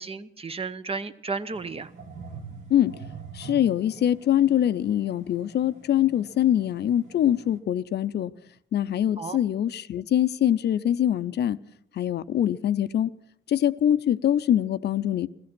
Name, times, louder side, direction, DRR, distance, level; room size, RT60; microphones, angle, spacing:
voice 1, 0.0-1.9 9.2-9.4, right 4 dB, 30° right, 0.7 m, -33 dB
sound 1, 1.5-7.6, right 5 dB, 80° right, 2.2 m, -45 dB
voice 2, 3.3-8.3 8.7-11.6 12.0-13.1 13.5-15.3, left 11 dB, 60° left, 0.5 m, -23 dB
15.5 x 15.0 x 6.0 m
cardioid pair, 90°, 20 cm